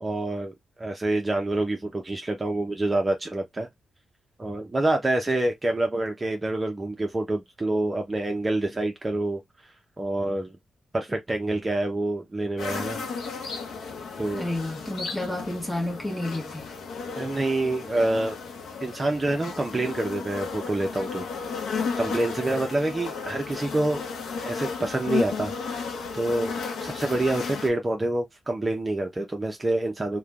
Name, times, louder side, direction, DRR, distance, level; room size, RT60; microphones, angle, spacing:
voice 1, 0.0-3.7 4.4-9.4 10.0-10.6 10.9-13.1 14.2-14.5 17.2-18.4 18.8-21.3 22.0-24.0 24.4-25.9 26.1-30.2, right 2 dB, 25° right, 0.6 m, -27 dB
sound 1, 12.6-27.7, left 5 dB, 85° left, 0.7 m, -34 dB
voice 2, 14.3-16.6, left 1 dB, 10° left, 1.1 m, -30 dB
3.2 x 2.2 x 2.3 m
cardioid pair, 85°, 0 cm